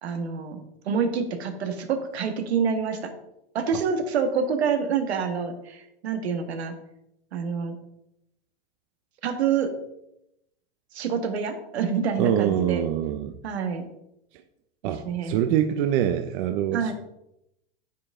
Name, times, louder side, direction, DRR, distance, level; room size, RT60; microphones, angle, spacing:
voice 1, 0.0-0.6 0.9-3.1 3.5-6.7 7.3-7.8 9.2-9.7 10.9-12.8 13.4-13.9 14.8-15.4 16.7-16.9, right 6 dB, 85° right, 6 dB, 1.9 m, -27 dB
voice 2, 12.2-13.4 14.8-16.9, right 10 dB, 55° right, 8 dB, 0.8 m, -24 dB
9.4 x 8.0 x 3.8 m, 0.83 s
supercardioid pair, 125°, 31 cm